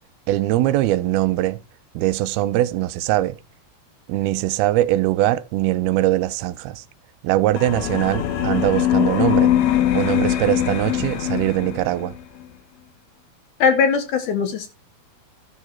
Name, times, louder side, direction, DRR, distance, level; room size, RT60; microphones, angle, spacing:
voice 1, 0.3-1.6 1.9-3.4 4.1-6.8 7.2-9.5 9.9-12.2, right 15 dB, 85° right, 2.6 m, -21 dB
sound 1, 7.6-12.2, left 11 dB, 90° left, 3.4 m, -22 dB
voice 2, 13.6-14.7, left 6 dB, 70° left, 2.1 m, -19 dB
13.0 x 6.4 x 4.4 m
omnidirectional pair, 4.4 m